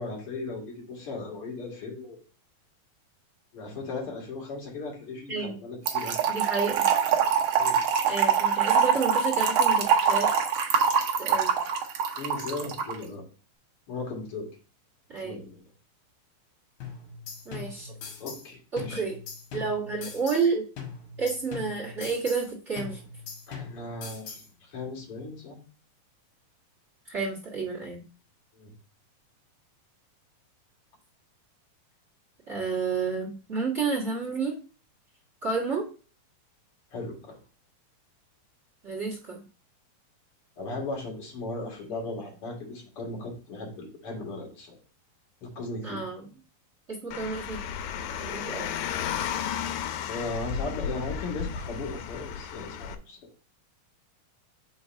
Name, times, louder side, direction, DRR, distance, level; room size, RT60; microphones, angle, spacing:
voice 1, 0.0-2.2 3.5-6.2 7.6-7.8 12.2-13.2 13.9-14.5 15.2-15.6 18.2-19.0 23.5-25.6 28.5-28.7 36.9-37.4 40.6-44.8 45.4-46.0 50.1-53.2, left 3 dB, 45° left, -1 dB, 2.2 m, -37 dB
Trickle dribble / Fill (with liquid), 5.9-12.9, right 7 dB, 80° right, 1.3 m, -24 dB
voice 2, 6.3-6.9 8.0-10.3 11.2-11.5 15.1-15.4 17.4-17.9 18.7-19.2 19.5-20.6 21.2-23.0 27.0-28.0 32.5-34.6 35.4-35.8 38.8-39.4 45.8-46.2 46.9-47.6 48.2-48.7, right 4 dB, 50° right, -4 dB, 0.8 m, -30 dB
sound 1, 16.8-18.5 18.8-20.5 20.8-22.5 22.8-24.5, left 6 dB, 65° left, 2.7 m, -41 dB
Car, 47.1-53.0, left 8 dB, 85° left, 2.3 m, -33 dB
5.2 x 4.0 x 5.0 m, 0.37 s
omnidirectional pair, 4.0 m